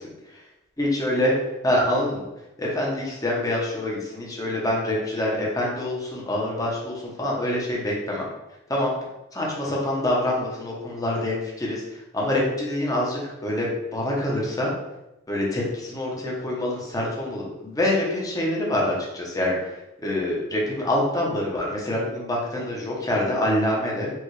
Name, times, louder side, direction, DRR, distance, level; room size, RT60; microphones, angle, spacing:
voice 1, 0.8-1.3 1.6-2.3 2.6-8.3 8.7-8.9 9.3-14.7 15.3-19.8 20.0-24.1, left 1 dB, 20° left, -3 dB, 0.9 m, -25 dB
4.6 x 2.5 x 3.2 m, 0.95 s
head